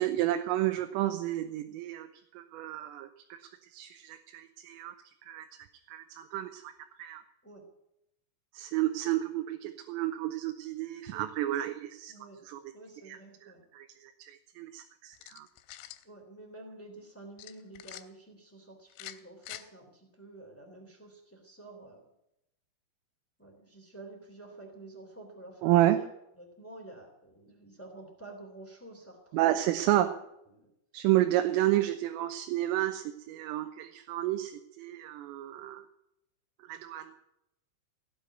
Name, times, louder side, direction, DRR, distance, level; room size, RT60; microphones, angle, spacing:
voice 1, 0.0-2.1 2.4-3.4 3.7-4.9 5.2-5.5 5.9-6.7 7.0-7.2 8.5-12.1 12.5-12.6 13.1-13.2 13.7-15.5 25.6-26.0 29.3-30.1 30.9-35.9 36.6-37.1, right 14 dB, 90° right, 6 dB, 3.4 m, -30 dB
voice 2, 12.1-12.4 12.7-13.6 16.0-22.0 23.4-26.1 26.3-30.2 30.5-30.7, right 2 dB, 5° left, 2 dB, 1.4 m, -50 dB
sound 1, 15.1-16.0 17.4-18.0 18.9-19.6, left 14 dB, 85° left, 3.4 m, -45 dB
16.5 x 8.2 x 9.2 m, 0.82 s
omnidirectional pair, 5.7 m